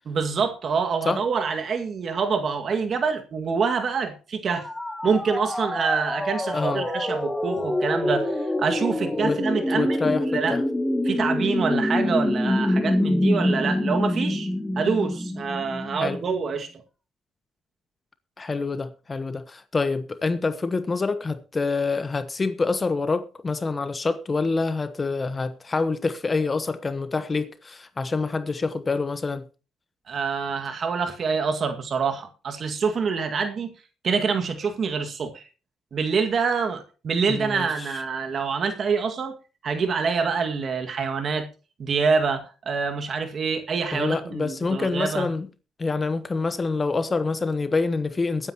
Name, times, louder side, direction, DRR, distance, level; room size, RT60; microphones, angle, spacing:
voice 1, 0.1-4.7 5.0-10.6 11.1-14.5 14.8-16.8 30.1-33.7 34.0-35.5 35.9-39.4 39.6-41.5 41.8-45.3, right 5 dB, 50° right, 2.0 m, -26 dB
sound 1, 4.5-16.4, left 1 dB, 10° left, 1.9 m, -26 dB
voice 2, 6.5-6.8 9.2-9.4 9.7-10.6 16.0-16.2 18.4-29.4 37.3-37.7 43.9-45.5 45.8-48.5, left 4 dB, 30° left, 1.1 m, -26 dB
22.0 x 9.6 x 2.9 m
cardioid pair, 90°, 0 cm